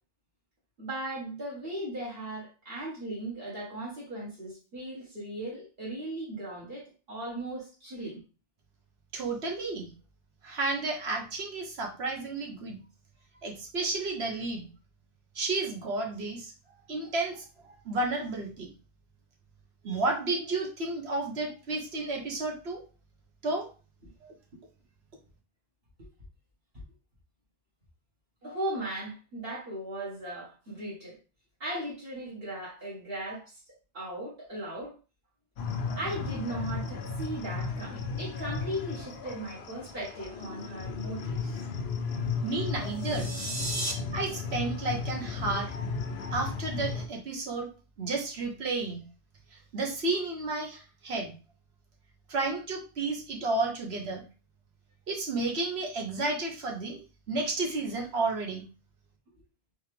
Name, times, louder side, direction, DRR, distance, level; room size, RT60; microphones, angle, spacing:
voice 1, 0.8-8.2 28.4-31.2 31.6-33.6 33.9-35.0 36.0-41.7, right 1 dB, 65° right, -6 dB, 1.7 m, -37 dB
voice 2, 9.1-9.9 10.4-12.8 13.4-14.6 15.3-16.5 16.9-18.7 19.8-22.8 23.4-23.7 24.2-24.3 42.4-43.3 44.1-45.7 46.3-47.7 48.0-49.0 49.7-51.3 52.3-54.2 55.1-57.0 57.3-58.6, right 3 dB, 80° right, 1 dB, 1.4 m, -32 dB
sound 1, 35.6-47.1, left 4 dB, 80° left, 0.9 m, -35 dB
sound 2, 42.9-43.9, right 1 dB, 20° right, 0.7 m, -34 dB
4.3 x 3.4 x 3.3 m, 0.34 s
omnidirectional pair, 1.1 m